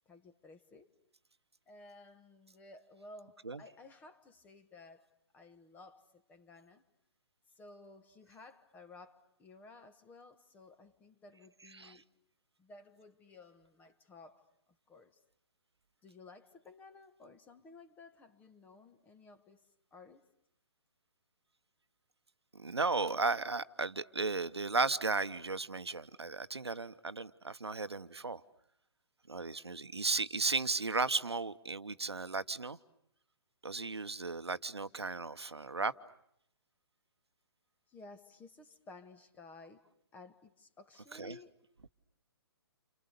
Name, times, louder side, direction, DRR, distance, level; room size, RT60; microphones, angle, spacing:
voice 1, 0.0-0.9 1.7-5.1 5.3-6.8 7.6-12.0 12.6-14.5 14.9-15.2 16.0-20.3 37.9-41.5, left 3 dB, 10° left, 1.4 m, -56 dB
voice 2, 22.5-28.4 29.3-32.8 33.6-35.9 41.1-41.4, right 3 dB, 75° right, 1.0 m, -35 dB
29.5 x 29.0 x 6.8 m
figure-of-eight pair, 130°, 14 cm